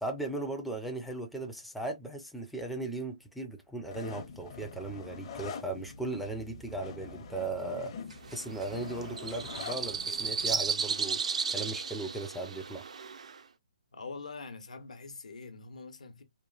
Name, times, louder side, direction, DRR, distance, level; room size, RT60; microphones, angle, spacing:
voice 1, 0.0-7.9 8.3-11.2 11.5-12.8, right 2 dB, ahead, 0.4 m, -37 dB
sound 1, 3.9-10.7, left 5 dB, 40° left, 0.6 m, -45 dB
sound 2, 7.4-7.8 8.1-10.6, right 2 dB, 90° right, 1.4 m, -59 dB
sound 3, 8.2-13.4, right 5 dB, 70° right, 0.4 m, -34 dB
voice 2, 13.9-16.2, left 4 dB, 75° left, 0.8 m, -44 dB
3.0 x 2.2 x 2.3 m
hypercardioid pair, 150°, 4 cm